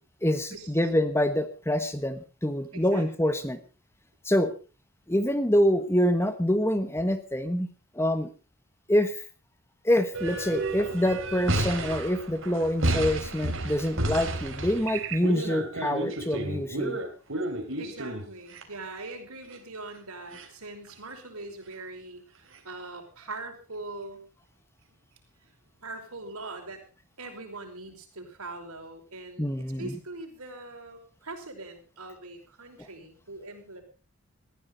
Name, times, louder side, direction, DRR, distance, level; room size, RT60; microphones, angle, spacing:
voice 1, 0.2-3.6 4.2-4.5 5.1-8.3 8.9-9.2 9.8-17.0 29.4-29.9 32.8-32.9, equal, 10° left, 10 dB, 1.1 m, -26 dB
voice 2, 2.7-3.1 17.8-24.2 25.8-26.8 27.2-33.8, right 2 dB, 85° right, 4 dB, 5.2 m, -42 dB
sound 1, 10.1-18.6 19.5-19.6 19.9-20.0 20.3-20.5 20.9-21.0 22.5-22.6, right 2 dB, 65° right, 3.5 m, -31 dB
20.0 x 14.0 x 3.9 m, 0.34 s
head